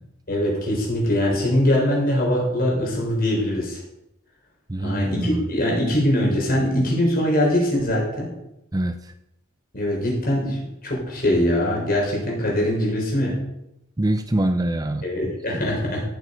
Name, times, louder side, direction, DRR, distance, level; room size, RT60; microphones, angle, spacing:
voice 1, 0.3-3.8 4.8-8.3 9.7-13.4 15.0-16.0, left 1 dB, 45° left, -2 dB, 4.1 m, -22 dB
voice 2, 4.7-5.5 8.7-9.0 14.0-15.0, right 1 dB, 20° right, 8 dB, 0.5 m, -24 dB
13.5 x 8.2 x 5.1 m, 0.86 s
head